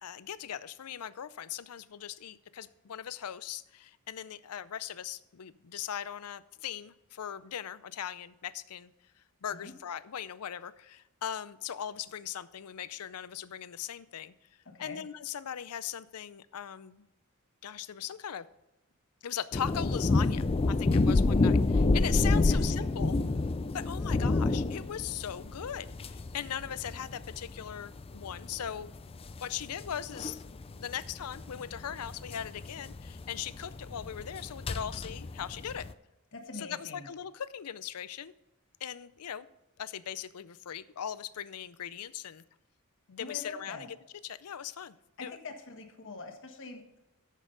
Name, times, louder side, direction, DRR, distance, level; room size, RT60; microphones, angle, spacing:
voice 1, 0.0-8.9 9.4-14.3 14.8-17.1 17.6-18.5 19.2-23.1 23.7-28.9 29.4-30.4 30.8-35.9 36.6-38.3 38.8-39.5 39.8-42.4 43.1-43.9 44.2-44.9 45.2-45.4, left 9 dB, 85° left, 16 dB, 0.5 m, -39 dB
voice 2, 14.6-15.0 22.3-22.6 36.3-37.1 43.2-43.9 45.2-47.0, left 3 dB, 60° left, 4 dB, 1.5 m, -44 dB
sound 1, 19.5-35.9, left 3 dB, 25° left, 0.4 m, -29 dB
11.0 x 7.4 x 3.9 m, 0.95 s
head